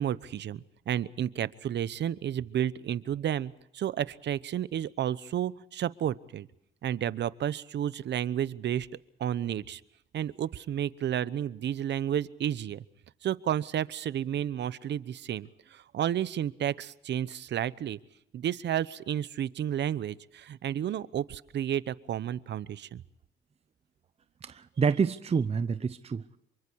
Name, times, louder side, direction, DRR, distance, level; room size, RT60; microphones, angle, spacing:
voice 1, 0.0-6.5 6.8-8.9 9.2-9.8 10.1-12.8 13.2-18.0 18.3-23.0, right 10 dB, 60° right, 17 dB, 0.9 m, -31 dB
voice 2, 24.4-26.4, right 5 dB, 30° right, 13 dB, 0.8 m, -28 dB
27.5 x 24.0 x 4.7 m, 0.80 s
cardioid pair, 90°, 20 cm